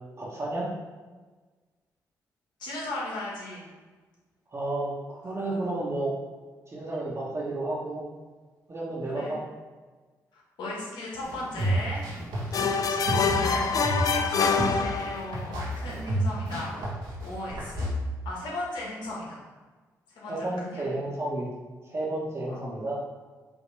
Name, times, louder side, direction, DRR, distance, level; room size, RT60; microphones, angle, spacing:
voice 1, 0.2-0.7 4.5-6.1 6.7-8.0 8.7-9.4 12.4-12.7 20.2-21.5 21.9-23.0, right 2 dB, 35° right, -5 dB, 1.2 m, -32 dB
voice 2, 2.6-3.6 5.4-5.6 9.0-9.3 10.3-12.0 12.5-16.8 17.2-17.9 18.2-19.4 20.1-20.9 22.5-22.6, left 2 dB, 75° left, -4 dB, 1.3 m, -37 dB
sound 1, 11.2-17.9, right 1 dB, 80° right, 1.2 m, -31 dB
sound 2, 12.5-15.5, left 5 dB, 50° left, 0.4 m, -25 dB
5.2 x 2.8 x 3.3 m, 1.3 s
supercardioid pair, 50°, 8 cm